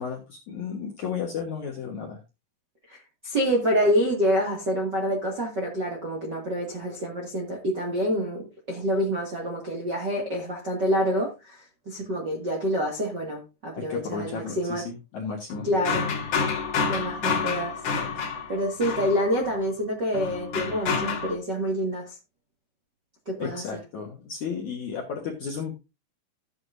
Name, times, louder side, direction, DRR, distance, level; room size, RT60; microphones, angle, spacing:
voice 1, 0.0-2.2 13.8-15.7 23.4-25.7, left 6 dB, 65° left, 0 dB, 1.9 m, -33 dB
voice 2, 3.2-14.8 15.6-16.1 16.9-17.7 18.5-22.2 23.2-23.6, equal, 40° right, -1 dB, 1.5 m, -27 dB
sound 1, 15.5-19.6 20.1-21.3, left 5 dB, 45° left, 2.2 m, -29 dB
14.0 x 8.2 x 2.6 m, 0.27 s
omnidirectional pair, 5.1 m